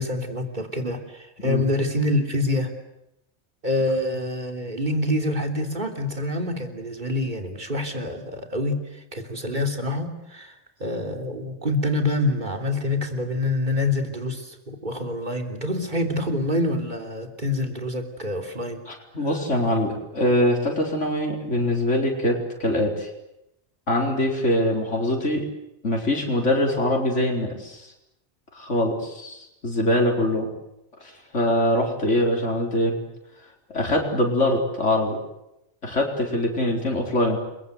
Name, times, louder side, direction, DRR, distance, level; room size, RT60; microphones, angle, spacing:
voice 1, 0.0-2.7 3.6-8.8 9.1-10.5 10.8-18.8, left 1 dB, 40° right, 5 dB, 3.5 m, -26 dB
voice 2, 18.9-23.1 23.9-25.4 25.8-27.9 28.5-30.5 31.0-33.0 33.7-35.2 35.8-37.4, left 1 dB, 90° left, 1 dB, 4.7 m, -23 dB
29.5 x 23.0 x 8.2 m, 0.86 s
omnidirectional pair, 1.2 m